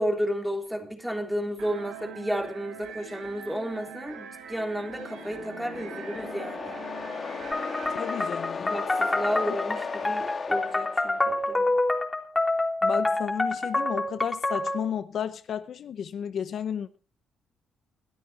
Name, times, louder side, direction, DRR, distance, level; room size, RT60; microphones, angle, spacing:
voice 1, 0.0-6.8 8.6-11.7, equal, 5° right, 3.4 m, -32 dB
sound 1, 1.6-8.3, right 8 dB, 85° right, 5.0 m, -43 dB
sound 2, 4.6-11.6, left 5 dB, 40° left, 2.4 m, -36 dB
sound 3, 7.5-14.9, left 2 dB, 15° left, 3.2 m, -27 dB
voice 2, 7.9-8.7 12.8-17.0, left 8 dB, 60° left, 0.8 m, -33 dB
22.0 x 12.5 x 2.9 m
cardioid pair, 90°, 0 cm